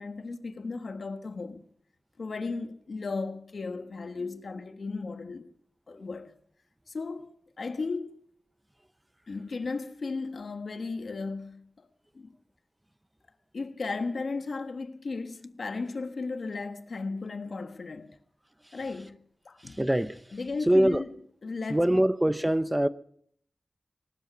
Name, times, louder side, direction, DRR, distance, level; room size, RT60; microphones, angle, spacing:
voice 1, 0.0-1.6 2.2-5.5 5.9-6.3 6.9-8.2 9.3-11.9 12.1-12.3 13.5-18.2 18.7-19.8 20.3-21.1 21.4-21.8, left 3 dB, 75° left, 1.3 m, -35 dB
voice 2, 19.6-20.2 20.7-21.0 21.7-22.9, right 1 dB, 15° right, 0.7 m, -24 dB
19.5 x 12.0 x 6.0 m
wide cardioid pair, 65°, 0 cm